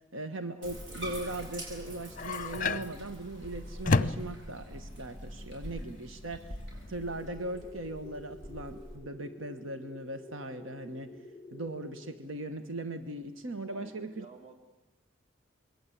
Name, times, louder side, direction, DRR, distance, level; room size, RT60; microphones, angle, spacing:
voice 1, 0.1-6.6 6.9-11.1 11.5-14.2, right 2 dB, 80° right, 9 dB, 1.4 m, -39 dB
Bathtub (filling or washing), 0.6-9.0, equal, 60° right, 7.9 m, -44 dB
sound 1, 1.7-7.3, left 3 dB, 40° left, 0.8 m, -33 dB
sound 2, 7.1-12.1, left 2 dB, 20° left, 2.2 m, -50 dB
voice 2, 13.7-14.5, right 3 dB, 35° right, 4 dB, 3.7 m, -51 dB
27.5 x 22.0 x 8.6 m, 1.0 s
head